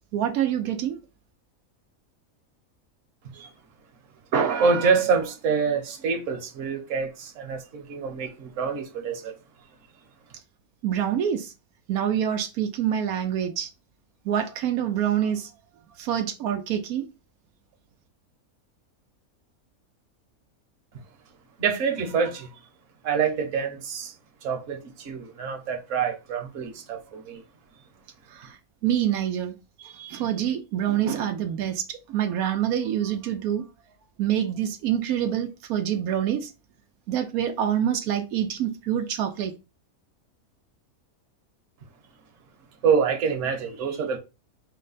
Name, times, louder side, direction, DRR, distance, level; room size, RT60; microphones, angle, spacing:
voice 1, 0.1-1.0 10.8-11.5 11.9-13.7 14.2-15.5 16.0-17.1 28.3-33.6 34.2-36.5 37.1-39.5, right 10 dB, 90° right, 1.1 m, -26 dB
voice 2, 4.3-9.3 21.6-22.5 23.0-24.1 24.4-27.4 42.8-44.2, right 6 dB, 65° right, 1.2 m, -26 dB
4.7 x 2.1 x 3.9 m
omnidirectional pair, 1.5 m